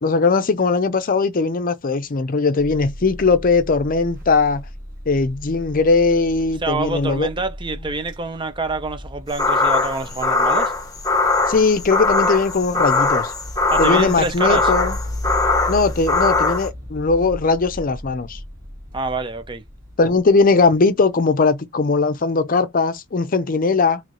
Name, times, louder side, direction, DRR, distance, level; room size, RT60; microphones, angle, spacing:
voice 1, 0.0-4.6 5.1-7.3 11.5-13.3 13.8-15.0 15.7-18.4 20.0-24.0, left 4 dB, 45° left, 0.6 m, -19 dB
sound 1, 2.6-21.1, left 1 dB, 45° right, 1.5 m, -36 dB
voice 2, 6.6-10.7 13.7-14.7 18.9-19.6, right 3 dB, 25° right, 0.6 m, -26 dB
sound 2, 9.3-16.7, left 3 dB, 20° left, 1.0 m, -20 dB
3.2 x 3.1 x 3.9 m
head